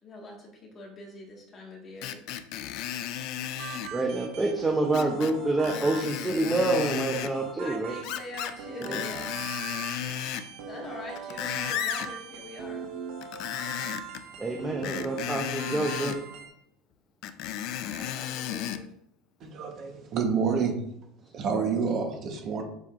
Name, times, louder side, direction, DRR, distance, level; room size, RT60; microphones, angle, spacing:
voice 1, 0.0-2.2 7.6-9.4 10.7-12.9 17.8-18.9, left 1 dB, 25° left, -1 dB, 1.7 m, -43 dB
Screech, 2.0-3.9 4.9-5.3 5.6-7.3 8.0-8.6 8.8-10.5 11.0-12.1 13.2-14.2 14.8-16.2 17.2-18.8 19.4-19.5, left 11 dB, 50° left, 0.4 m, -34 dB
sound 1, 3.6-16.5, right 6 dB, 60° right, 1.4 m, -41 dB
voice 2, 3.9-7.9 8.8-9.0 14.4-16.2, right 2 dB, 10° right, 1 dB, 0.7 m, -27 dB
voice 3, 19.4-20.8 21.3-22.6, right 6 dB, 35° right, 4 dB, 1.1 m, -28 dB
7.2 x 6.5 x 2.5 m, 0.72 s
cardioid pair, 160°, 0 cm